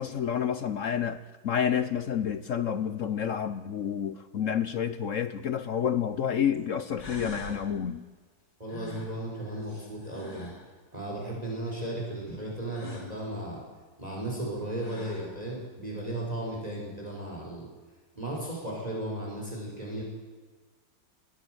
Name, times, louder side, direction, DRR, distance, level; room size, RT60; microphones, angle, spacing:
voice 1, 0.0-8.1, left 8 dB, 60° left, 12 dB, 0.9 m, -29 dB
sound 1, 6.5-6.6 7.0-7.6 8.7-10.7 12.7-13.1 14.3-14.4 14.7-15.3, left 1 dB, 85° left, 5.2 m, -44 dB
voice 2, 8.6-10.5 10.9-13.6 14.0-17.7 18.2-20.0, right 1 dB, 20° right, -3 dB, 5.6 m, -35 dB
21.5 x 16.0 x 7.9 m, 1.4 s
omnidirectional pair, 2.0 m